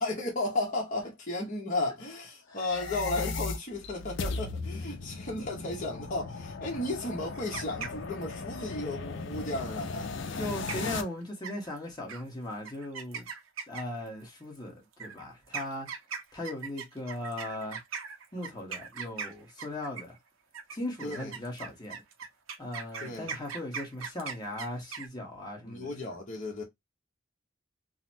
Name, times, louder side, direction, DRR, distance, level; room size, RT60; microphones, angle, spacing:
voice 1, 0.0-10.1 21.0-21.3 23.0-23.3 25.6-26.6, left 2 dB, 40° left, 0.9 m, -34 dB
sound 1, 2.5-11.0, left 4 dB, 65° left, 0.5 m, -37 dB
sound 2, 7.3-8.4 10.3-10.4 10.7-11.0 11.4-11.8 12.1-12.2 12.6-14.1 14.9-20.2 20.5-25.1, right 6 dB, 80° right, 0.6 m, -39 dB
voice 2, 10.4-13.3 13.7-15.9 16.3-17.8 18.3-20.2 20.7-22.0 22.6-26.1, left 1 dB, 20° left, 1.2 m, -38 dB
3.9 x 2.0 x 2.7 m
head